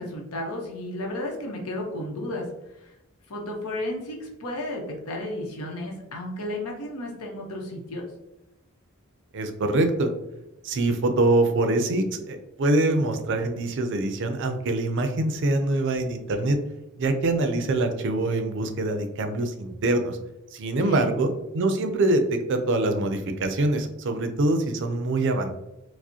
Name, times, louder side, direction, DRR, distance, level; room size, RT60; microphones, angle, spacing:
voice 1, 0.0-2.9 3.3-8.0 20.8-21.1, left 1 dB, 80° left, 0 dB, 0.9 m, -33 dB
voice 2, 9.3-10.1 10.6-16.6 17.0-20.2 20.5-25.5, right 2 dB, 55° right, 7 dB, 0.4 m, -24 dB
4.8 x 2.1 x 2.7 m, 0.93 s
head